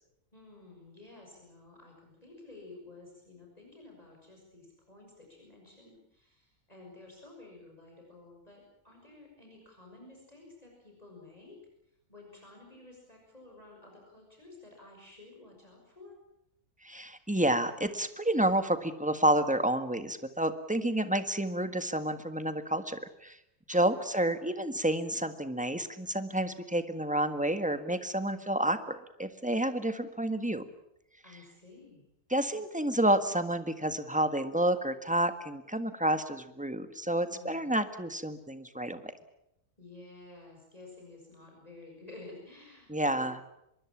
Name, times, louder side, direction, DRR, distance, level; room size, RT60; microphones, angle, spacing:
voice 1, 0.3-11.6 12.1-16.2 23.7-24.1 28.2-28.6 31.2-32.0 37.0-37.8 39.8-43.3, left 2 dB, 25° left, 0 dB, 6.6 m, -52 dB
voice 2, 16.8-23.4 23.7-30.6 32.3-39.0 42.9-43.4, right 1 dB, 5° right, 9 dB, 1.6 m, -29 dB
25.0 x 22.5 x 7.4 m, 0.83 s
omnidirectional pair, 1.6 m